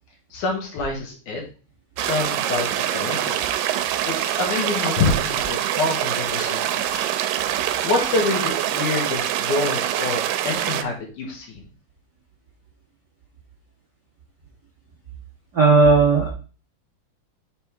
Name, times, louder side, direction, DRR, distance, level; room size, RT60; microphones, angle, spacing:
voice 1, 0.3-1.4 2.0-3.4 4.1-7.1 7.8-11.6, left 3 dB, 70° left, -1 dB, 3.1 m, -26 dB
sound 1, 2.0-10.8, right 11 dB, 90° right, 2.2 m, -25 dB
voice 2, 15.5-16.3, right 3 dB, 65° right, -3 dB, 1.0 m, -15 dB
6.6 x 3.6 x 4.6 m, 0.36 s
omnidirectional pair, 3.7 m